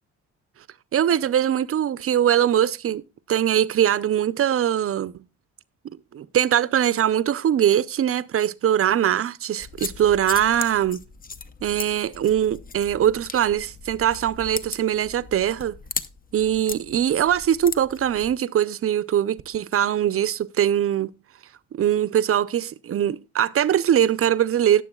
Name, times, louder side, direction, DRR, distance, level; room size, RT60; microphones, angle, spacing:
voice 1, 0.9-3.0 3.3-5.2 6.1-11.0 11.6-15.7 16.3-21.1 21.7-24.8, right 10 dB, 50° right, 0.6 m, -22 dB
sound 1, 9.6-18.3, left 4 dB, 30° left, 0.7 m, -37 dB
17.5 x 7.1 x 2.3 m
cardioid pair, 90°, 30 cm